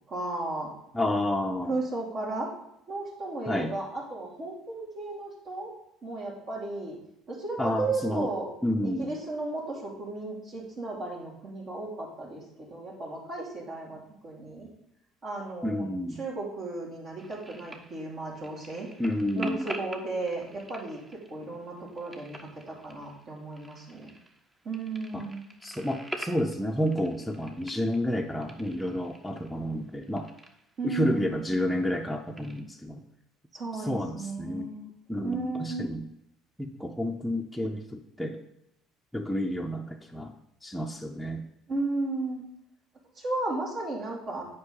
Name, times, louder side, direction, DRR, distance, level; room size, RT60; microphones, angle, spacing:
voice 1, 0.1-0.7 1.7-2.5 2.9-5.7 6.0-7.0 7.3-8.5 8.8-14.7 15.2-15.9 16.2-18.9 19.3-24.1 24.6-25.5 30.8-31.4 33.5-34.9 35.2-35.9 41.7-42.4 43.2-44.4, right 2 dB, 55° right, -3 dB, 2.5 m, -34 dB
voice 2, 0.9-1.8 3.5-3.7 7.6-8.3 8.6-9.1 15.6-16.2 19.0-19.7 25.1-25.2 25.6-30.3 30.8-33.0 33.8-34.7 35.1-36.0 36.6-38.4 39.1-40.3 40.6-41.5, left 1 dB, 5° left, 0 dB, 0.7 m, -30 dB
sound 1, 17.2-32.6, right 1 dB, 20° right, 0.9 m, -46 dB
7.8 x 5.1 x 3.8 m, 0.81 s
hypercardioid pair, 70°, 0 cm